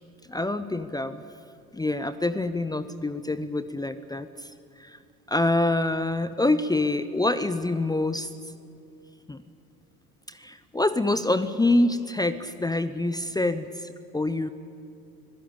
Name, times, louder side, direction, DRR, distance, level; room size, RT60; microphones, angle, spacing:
voice 1, 0.3-1.2 1.7-4.5 4.8-5.0 5.3-8.3 9.3-9.4 10.3-14.5, left 2 dB, 10° left, 13 dB, 0.8 m, -26 dB
25.5 x 16.5 x 9.0 m, 2.6 s
figure-of-eight pair, 65°, 45 cm